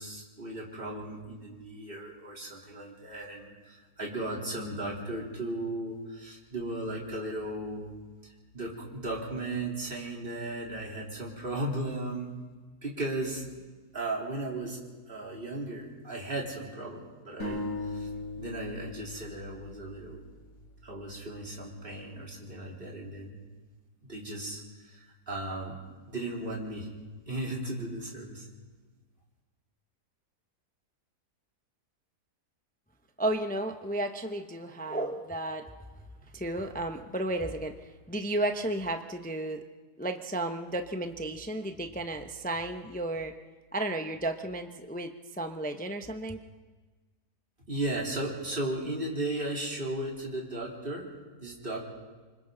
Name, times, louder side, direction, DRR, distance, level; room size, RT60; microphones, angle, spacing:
voice 1, 0.0-7.9 8.2-12.3 12.8-13.4 13.9-14.8 15.1-18.1 18.4-20.2 20.8-23.4 24.0-25.8 26.1-26.9 27.3-28.5 47.7-51.1 51.4-51.8, right 1 dB, 35° right, -3 dB, 3.8 m, -36 dB
sound 1, 17.4-21.0, left 2 dB, 50° left, 6.9 m, -39 dB
voice 2, 33.2-35.7 36.3-39.6 40.0-43.3 43.7-46.4, right 1 dB, 10° left, 5 dB, 0.5 m, -33 dB
27.5 x 25.0 x 3.9 m, 1.3 s
omnidirectional pair, 1.7 m